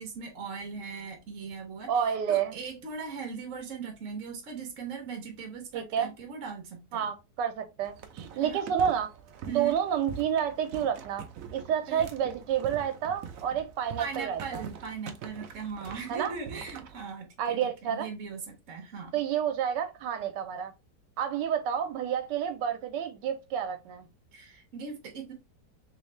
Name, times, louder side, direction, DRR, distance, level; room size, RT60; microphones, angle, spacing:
voice 1, 0.0-7.0 8.4-8.7 9.5-9.8 11.9-12.1 14.0-19.2 24.3-25.3, right 5 dB, 55° right, 1.1 m, -39 dB
voice 2, 1.9-2.6 5.7-6.1 6.9-9.1 9.4-11.3 11.5-14.6 16.1-16.3 17.4-18.1 19.1-20.7 21.2-24.1, right 8 dB, 85° right, 1.3 m, -29 dB
sound 1, 7.8-17.0, right 7 dB, 70° right, 0.8 m, -44 dB
3.3 x 3.1 x 3.0 m
omnidirectional pair, 1.9 m